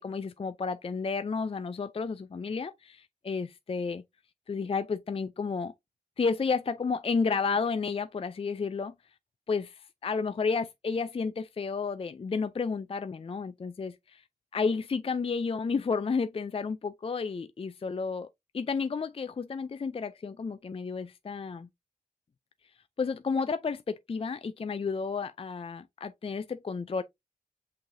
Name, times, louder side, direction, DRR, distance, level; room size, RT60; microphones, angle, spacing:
voice 1, 0.0-4.0 4.5-5.7 6.2-8.9 9.5-14.2 14.5-18.3 18.5-21.7 23.0-27.0, left 5 dB, 40° left, 0.4 m, -31 dB
5.6 x 3.3 x 2.6 m
wide cardioid pair, 60°, 15 cm